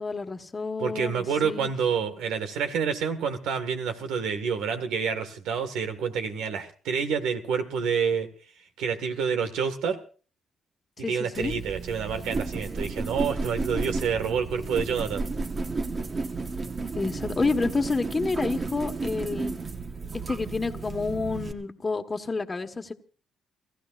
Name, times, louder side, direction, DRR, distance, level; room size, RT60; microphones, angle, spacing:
voice 1, 0.0-1.7 11.0-11.5 16.9-19.5 20.3-22.9, left 3 dB, 25° left, 4 dB, 1.5 m, -29 dB
voice 2, 0.8-8.3 8.8-10.0 11.1-15.3, right 6 dB, 90° right, 8 dB, 1.8 m, -28 dB
sound 1, 11.3-21.5, right 3 dB, 35° right, 1.3 m, -33 dB
29.0 x 15.0 x 2.5 m, 0.39 s
cardioid pair, 90°, 0 cm